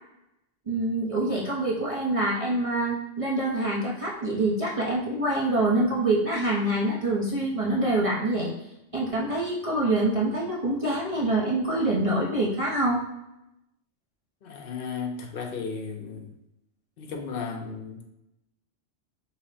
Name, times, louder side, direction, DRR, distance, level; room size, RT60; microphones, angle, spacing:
voice 1, 0.7-8.5 8.9-13.0, right 2 dB, 35° right, -4 dB, 0.7 m, -25 dB
voice 2, 14.4-16.3 17.0-18.1, left 5 dB, 55° left, 3 dB, 0.8 m, -35 dB
5.5 x 2.1 x 4.1 m, 0.87 s
omnidirectional pair, 1.2 m